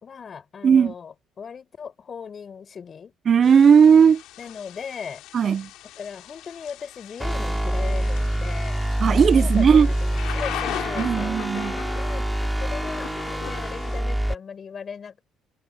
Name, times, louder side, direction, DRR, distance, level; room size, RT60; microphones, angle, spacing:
voice 1, 0.0-3.1 4.4-5.2 6.0-12.3 12.6-15.2, left 6 dB, 40° left, 5.2 m, -38 dB
voice 2, 0.6-0.9 3.3-4.2 5.3-5.7 9.0-9.9 11.0-11.8, right 7 dB, 45° right, 0.6 m, -16 dB
Thunder / Rain, 3.4-14.0, left 15 dB, 80° left, 6.1 m, -39 dB
sound 1, 7.2-14.3, right 1 dB, 5° right, 2.6 m, -26 dB
cardioid pair, 90°, 0 cm